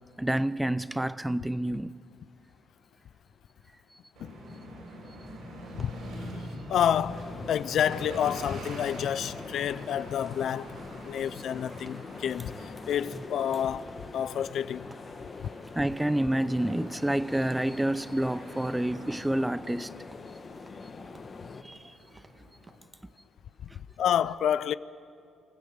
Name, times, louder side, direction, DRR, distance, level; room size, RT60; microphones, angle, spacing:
voice 1, 0.2-1.9 15.7-19.9 21.1-21.2 21.6-22.2, right 1 dB, 10° right, 0.5 m, -29 dB
sound 1, 4.2-22.8, equal, 85° right, 6.5 m, -45 dB
sound 2, 5.8-9.0 9.2-9.5 9.7-12.0 12.3-12.5 12.8-15.7 16.0-16.8 17.0-17.3 17.6-18.8 19.1-19.8 20.1-22.9, right 2 dB, 25° right, 1.6 m, -56 dB
voice 2, 6.7-10.8 11.0-13.9 14.1-14.9 23.7-24.7, left 9 dB, 70° left, 0.5 m, -29 dB
sound 3, 6.9-21.6, left 4 dB, 40° left, 1.2 m, -44 dB
27.5 x 14.5 x 7.5 m
cardioid pair, 90°, 0 cm